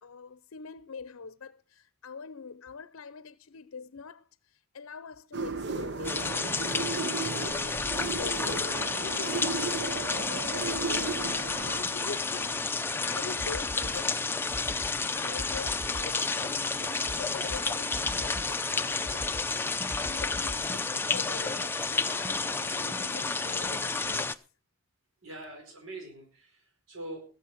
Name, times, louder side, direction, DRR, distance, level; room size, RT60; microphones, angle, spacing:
voice 1, 0.0-14.7 15.1-24.3, left 5 dB, 80° left, 0.6 m, -44 dB
sound 1, 5.3-11.8, right 4 dB, 55° right, 0.9 m, -35 dB
sound 2, 6.0-24.3, left 4 dB, 10° left, 0.5 m, -31 dB
sound 3, 13.4-14.0 14.5-14.9 15.4-16.3 17.1-17.2 17.5-17.6 17.9-18.6 19.0-19.4 19.9-20.8, left 1 dB, 35° right, 2.2 m, -40 dB
voice 2, 25.2-27.2, right 1 dB, 75° right, 4.8 m, -44 dB
21.0 x 7.5 x 4.5 m
head